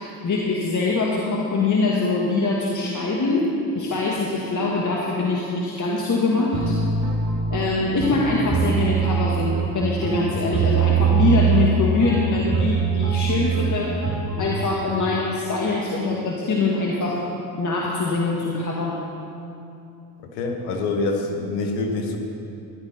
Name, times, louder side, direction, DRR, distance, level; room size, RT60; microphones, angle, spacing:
voice 1, 0.0-6.8 7.5-14.1 14.4-17.3 17.6-19.0, left 3 dB, 40° left, -3 dB, 1.9 m, -23 dB
sound 1, 6.5-14.4, right 5 dB, 35° right, 1.9 m, -22 dB
voice 2, 20.2-22.2, left 3 dB, 85° left, 3 dB, 1.5 m, -26 dB
14.5 x 11.5 x 4.4 m, 2.7 s
hypercardioid pair, 60°, 46 cm